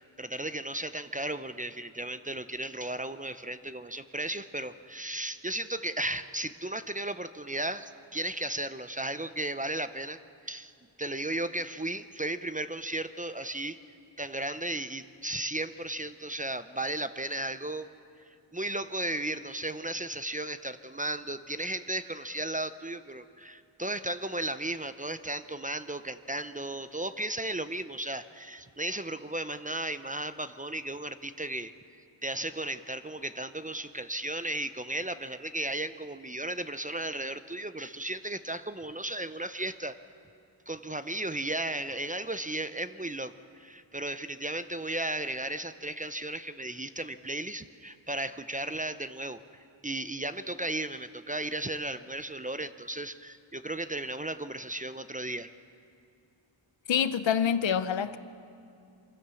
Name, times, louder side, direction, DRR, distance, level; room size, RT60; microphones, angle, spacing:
voice 1, 0.2-10.2 10.5-10.7 11.0-13.8 14.2-17.9 18.5-31.7 32.2-39.9 40.7-49.4 49.8-55.5, right 1 dB, 15° right, 12 dB, 0.6 m, -35 dB
voice 2, 56.9-58.2, left 8 dB, 70° left, 13 dB, 0.8 m, -26 dB
24.5 x 15.0 x 7.0 m, 2.6 s
wide cardioid pair, 70°, 47 cm